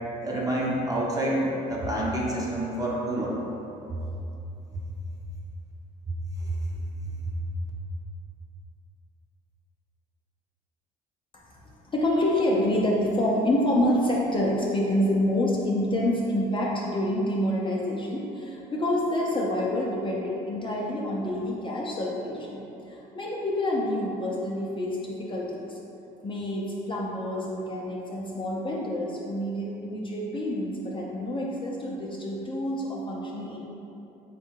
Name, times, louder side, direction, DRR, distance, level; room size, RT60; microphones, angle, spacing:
voice 1, 0.2-3.3 6.5-6.6, right 1 dB, 20° right, -5 dB, 0.9 m, -28 dB
voice 2, 11.9-25.8 26.2-33.6, left 1 dB, 30° left, -4 dB, 0.6 m, -27 dB
3.8 x 2.3 x 4.5 m, 2.9 s
supercardioid pair, 75°, 18 cm